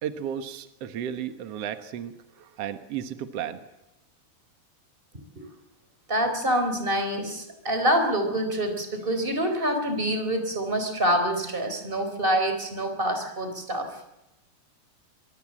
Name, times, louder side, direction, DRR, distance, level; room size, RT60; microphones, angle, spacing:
voice 1, 0.0-3.6, right 9 dB, 65° right, 9 dB, 1.5 m, -34 dB
voice 2, 6.1-14.0, right 1 dB, 15° right, 7 dB, 3.8 m, -26 dB
25.0 x 23.0 x 7.6 m, 0.93 s
omnidirectional pair, 4.6 m